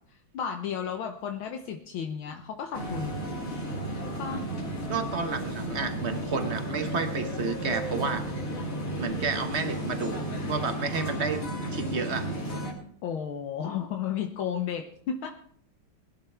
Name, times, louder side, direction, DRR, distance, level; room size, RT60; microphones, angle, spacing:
voice 1, 0.1-3.3 4.0-4.6 8.8-8.9 13.0-15.3, left 8 dB, 75° left, 5 dB, 1.7 m, -33 dB
sound 1, 2.7-12.7, right 1 dB, 40° left, 3.1 m, -33 dB
voice 2, 4.9-8.3 8.9-10.2 10.5-11.4 11.7-12.3, right 4 dB, 40° right, 8 dB, 1.1 m, -31 dB
21.0 x 12.0 x 3.4 m, 0.63 s
omnidirectional pair, 2.3 m